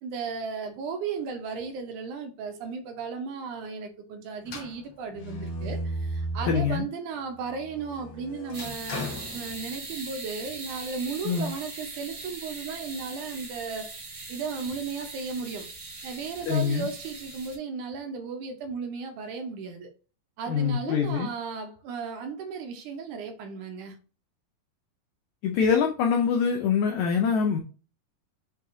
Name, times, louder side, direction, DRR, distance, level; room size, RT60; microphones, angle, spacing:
voice 1, 0.0-13.9 14.3-15.7 16.0-19.9 20.4-24.0, right 5 dB, 75° right, 1.9 m, -35 dB
sound 1, 4.4-6.9 7.3-10.1, right 1 dB, 70° left, 1.1 m, -36 dB
voice 2, 6.5-6.8 11.2-11.5 16.5-16.9 20.5-21.3 25.4-27.6, left 6 dB, 90° left, 1.6 m, -24 dB
sound 2, 8.5-17.6, right 3 dB, 55° right, 1.0 m, -41 dB
6.5 x 2.8 x 2.6 m
omnidirectional pair, 4.0 m